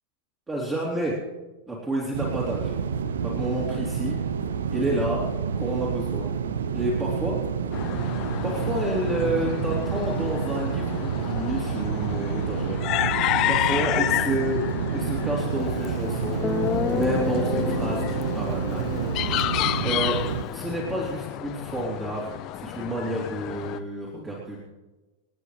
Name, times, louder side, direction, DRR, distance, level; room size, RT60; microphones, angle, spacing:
voice 1, 0.5-1.2 1.7-2.7 3.2-4.1 4.7-5.2 5.6-6.3 6.7-7.4 8.2-14.6 14.9-20.2 20.5-24.6, right 1 dB, 15° right, -4 dB, 3.1 m, -30 dB
sound 1, 2.1-20.4, right 7 dB, 65° right, 0.7 m, -29 dB
sound 2, 7.7-23.8, left 14 dB, 40° left, 0.6 m, -31 dB
Guitar, 15.8-15.9 16.4-20.5, left 5 dB, 20° left, 1.0 m, -30 dB
27.5 x 9.5 x 3.3 m, 1.2 s
figure-of-eight pair, 90°, 0 cm